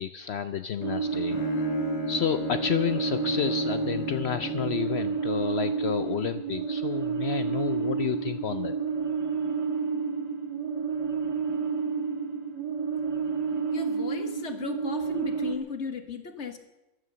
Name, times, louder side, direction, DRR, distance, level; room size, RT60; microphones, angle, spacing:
voice 1, 0.0-1.7 2.1-8.7, left 8 dB, 90° left, 11 dB, 0.5 m, -30 dB
Bowed string instrument, 0.8-5.0, left 6 dB, 65° left, 1.8 m, -36 dB
sound 1, 0.8-15.6, right 5 dB, 70° right, 2.2 m, -30 dB
voice 2, 13.7-16.6, left 5 dB, 40° left, 8 dB, 1.7 m, -36 dB
14.5 x 11.0 x 6.8 m, 0.97 s
omnidirectional pair, 1.8 m